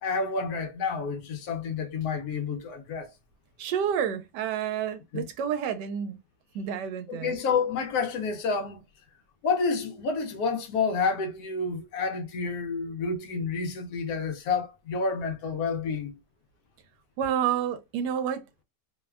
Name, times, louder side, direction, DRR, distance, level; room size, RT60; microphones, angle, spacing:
voice 1, 0.0-3.1 5.1-5.2 7.1-8.8 9.4-16.2, left 5 dB, 75° left, 1.1 m, -29 dB
voice 2, 3.6-6.2 6.5-7.4 17.2-18.6, right 8 dB, 85° right, 1.2 m, -29 dB
3.0 x 2.1 x 2.3 m
omnidirectional pair, 1.8 m